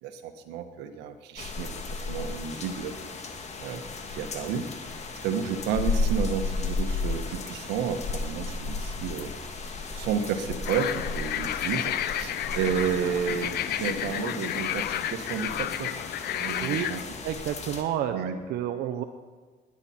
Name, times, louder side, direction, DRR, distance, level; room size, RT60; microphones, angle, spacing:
voice 1, 0.0-2.9 3.6-3.8 4.1-4.7 5.2-9.3 9.9-16.0 16.3-17.0 18.1-18.4, right 7 dB, 90° right, 7 dB, 1.3 m, -31 dB
sound 1, 1.4-17.8, left 3 dB, 40° left, 1.7 m, -34 dB
sound 2, 10.6-17.0, left 11 dB, 65° left, 0.7 m, -31 dB
voice 2, 16.6-16.9 17.2-18.1 18.5-19.0, right 11 dB, 70° right, 6 dB, 0.8 m, -29 dB
20.5 x 9.8 x 4.3 m, 1.4 s
cardioid pair, 110°, 17 cm